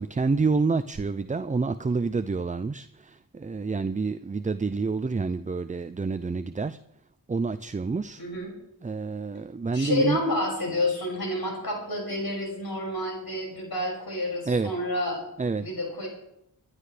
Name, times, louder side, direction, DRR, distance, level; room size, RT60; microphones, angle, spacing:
voice 1, 0.0-6.8 7.3-8.2 8.8-10.2 14.5-14.7 15.4-15.7, right 4 dB, 20° right, 0.4 m, -28 dB
voice 2, 8.2-8.5 9.7-15.2 15.6-16.1, left 1 dB, 75° left, 6.1 m, -29 dB
26.5 x 11.5 x 3.3 m
wide cardioid pair, 75°, 37 cm